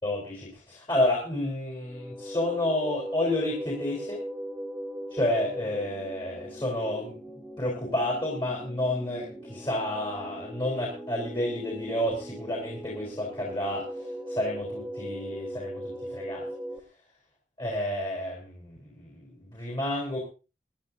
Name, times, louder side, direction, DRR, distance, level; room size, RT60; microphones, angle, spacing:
voice 1, 0.0-4.2 5.1-7.2 7.6-16.5 17.6-20.2, left 1 dB, 25° left, -2 dB, 4.2 m, -30 dB
sound 1, 1.8-16.8, equal, ahead, 1.5 m, -39 dB
25.0 x 10.5 x 2.7 m, 0.32 s
head